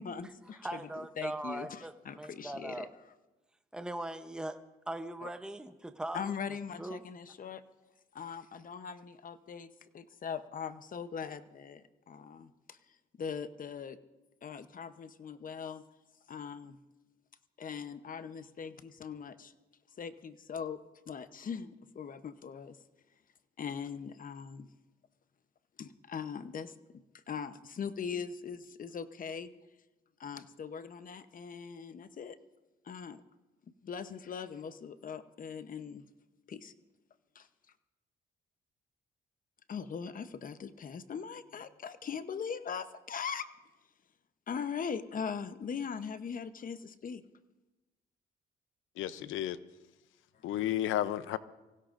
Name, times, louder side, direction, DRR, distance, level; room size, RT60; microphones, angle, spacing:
voice 1, 0.0-0.8 1.2-2.9 5.2-5.3 6.1-7.6 8.1-12.8 13.2-14.0 14.4-15.8 16.3-16.8 17.6-19.5 20.0-20.8 21.1-22.8 23.6-24.7 25.8-29.5 30.2-32.4 32.8-33.2 33.8-36.1 36.5-36.7 37.3-37.5 39.7-43.5 44.5-47.2, left 6 dB, 45° left, 0.9 m, -41 dB
voice 2, 0.6-2.9 3.7-6.2 6.8-7.0, right 1 dB, 5° right, 0.8 m, -40 dB
voice 3, 49.0-49.6 50.4-51.4, left 12 dB, 85° left, 0.7 m, -32 dB
24.5 x 16.0 x 2.6 m
cardioid pair, 90°, 20 cm